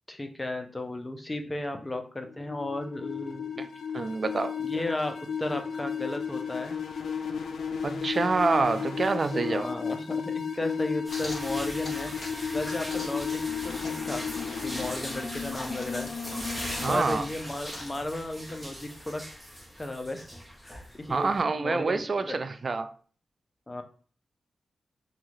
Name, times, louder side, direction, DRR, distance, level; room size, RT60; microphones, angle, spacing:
voice 1, 0.1-3.5 4.6-6.8 9.3-12.1 12.5-14.2 14.6-16.1 16.9-19.2 19.8-20.3 20.6-22.4 23.7-23.8, left 1 dB, 25° left, 0.5 m, -34 dB
sound 1, 2.3-17.0, left 6 dB, 90° left, 0.4 m, -34 dB
voice 2, 3.9-4.5 7.8-9.7 16.8-17.3 21.1-22.9, right 4 dB, 50° right, 0.3 m, -27 dB
sound 2, 11.0-21.4, equal, ahead, 1.0 m, -40 dB
sound 3, 11.1-12.3 12.6-13.2 13.4-18.0, left 2 dB, 55° left, 0.8 m, -45 dB
2.6 x 2.4 x 3.1 m
cardioid pair, 65°, 0 cm